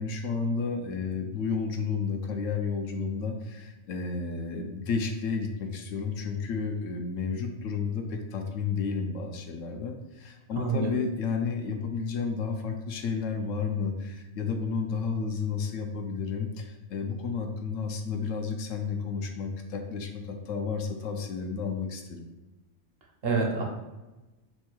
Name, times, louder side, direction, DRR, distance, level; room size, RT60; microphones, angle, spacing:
voice 1, 0.0-22.3, left 5 dB, 75° left, 4 dB, 0.9 m, -32 dB
voice 2, 10.6-11.0 23.2-23.6, right 3 dB, 55° right, 0 dB, 0.9 m, -27 dB
4.4 x 2.3 x 4.4 m, 1.1 s
omnidirectional pair, 1.3 m